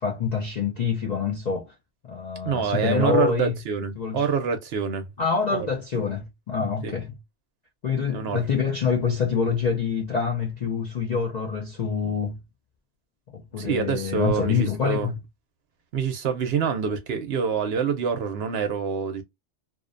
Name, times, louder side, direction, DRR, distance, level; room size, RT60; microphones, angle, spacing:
voice 1, 0.0-1.7 2.0-3.6 4.0-4.3 5.2-7.1 7.8-12.4 13.3-15.2, left 6 dB, 60° left, 0.4 m, -26 dB
voice 2, 2.4-5.1 5.5-5.7 6.8-6.9 8.1-8.4 13.6-15.1 15.9-19.2, right 6 dB, 65° right, 0.7 m, -26 dB
2.5 x 2.1 x 2.4 m
omnidirectional pair, 1.3 m